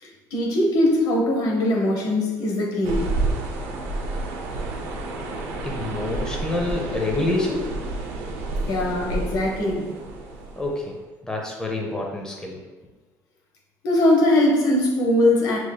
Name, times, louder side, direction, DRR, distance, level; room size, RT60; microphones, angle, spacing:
voice 1, 0.3-3.0 8.7-9.9 13.8-15.6, left 1 dB, 70° left, -2 dB, 1.1 m, -20 dB
sound 1, 2.8-11.0, right 2 dB, 90° right, 0.5 m, -30 dB
voice 2, 5.6-7.7 10.5-10.9 11.2-12.6, left 2 dB, 10° left, -1 dB, 0.7 m, -27 dB
5.9 x 3.1 x 2.2 m, 1.2 s
supercardioid pair, 95°, 7 cm